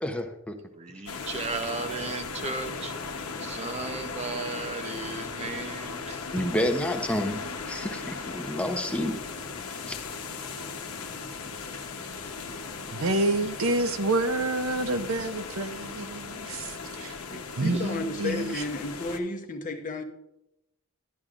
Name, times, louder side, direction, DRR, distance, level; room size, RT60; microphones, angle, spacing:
voice 1, 0.0-0.6 6.3-7.4 7.7-9.1 9.9-10.0, left 1 dB, 5° left, 0.8 m, -29 dB
voice 2, 0.8-2.9 3.4-6.2, right 3 dB, 30° right, 0.7 m, -35 dB
sound 1, 1.1-19.2, left 4 dB, 80° left, 1.0 m, -37 dB
voice 3, 12.9-17.2 17.6-18.6, right 2 dB, 65° right, 0.7 m, -28 dB
voice 4, 17.3-20.0, left 2 dB, 35° left, 0.9 m, -32 dB
12.5 x 11.0 x 2.5 m
head